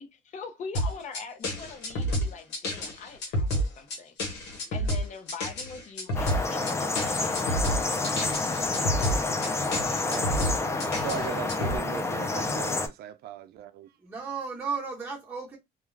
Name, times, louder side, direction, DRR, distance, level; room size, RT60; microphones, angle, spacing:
voice 1, 0.0-8.4 8.7-9.9, left 5 dB, 45° left, 0.7 m, -43 dB
sound 1, 0.7-11.8, equal, 80° left, 1.2 m, -30 dB
voice 2, 4.6-4.9 14.0-15.6, right 5 dB, 15° right, 1.0 m, -36 dB
sound 2, 6.1-12.9, left 3 dB, 15° left, 0.4 m, -29 dB
voice 3, 9.7-13.9, right 11 dB, 70° right, 0.4 m, -39 dB
2.3 x 2.2 x 3.2 m
cardioid pair, 110°, 17 cm